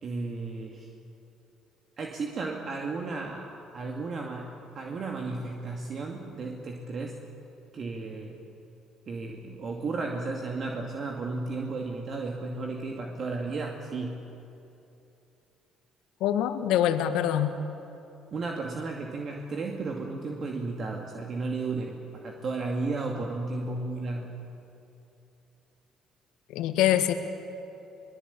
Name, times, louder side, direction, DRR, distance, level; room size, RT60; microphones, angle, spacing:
voice 1, 0.0-0.9 2.0-7.2 7.7-8.4 9.1-14.3 18.3-24.3, right 3 dB, 50° right, 1 dB, 2.3 m, -34 dB
voice 2, 16.2-17.5 26.5-27.1, left 11 dB, 75° left, 8 dB, 1.5 m, -24 dB
23.0 x 21.0 x 8.4 m, 2.9 s
supercardioid pair, 65°, 0 cm